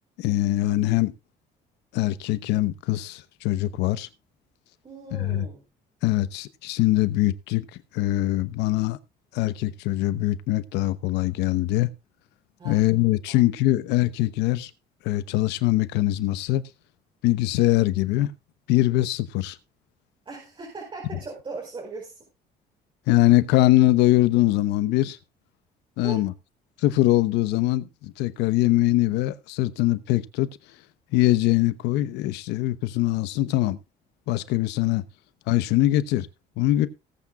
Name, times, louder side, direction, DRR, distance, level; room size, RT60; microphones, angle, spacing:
voice 1, 0.2-1.1 1.9-4.1 5.1-5.5 6.0-7.6 7.9-9.0 9.3-11.9 12.6-14.7 15.0-16.6 17.2-18.3 18.7-19.6 23.1-25.2 26.0-26.3 26.8-30.5 31.1-33.8 34.3-35.0 35.5-36.3 36.6-36.9, left 16 dB, 90° left, 0.9 m, -22 dB
voice 2, 4.8-5.6 12.6-12.8 13.3-13.4 20.2-22.2 26.0-26.3, right 3 dB, 30° right, 4.7 m, -38 dB
18.5 x 8.4 x 2.4 m
cardioid pair, 110°, 17 cm